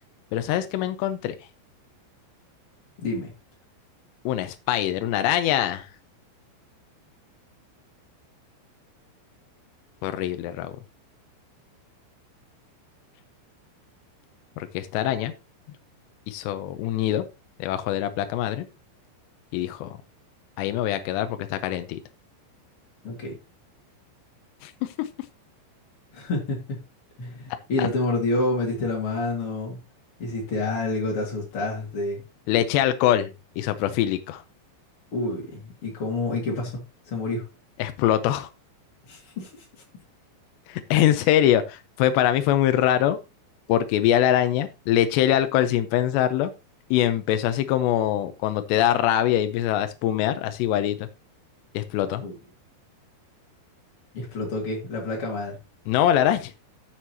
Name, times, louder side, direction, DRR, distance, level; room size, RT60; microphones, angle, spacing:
voice 1, 0.3-1.4 4.3-5.9 10.0-10.8 14.6-15.3 16.3-17.3 17.6-18.7 19.5-20.0 20.6-22.0 24.6-25.1 27.8-27.9 32.5-34.4 37.8-38.5 40.7-43.2 43.7-46.5 46.9-51.1 51.7-52.2 55.9-56.5, left 11 dB, 80° left, 2.6 m, -23 dB
voice 2, 3.0-3.3 23.0-23.4 26.1-26.8 27.2-29.8 30.2-32.2 35.1-37.5 39.0-39.7 52.2-52.3 54.1-55.6, left 2 dB, 40° left, 2.0 m, -28 dB
14.5 x 6.4 x 2.9 m
omnidirectional pair, 5.8 m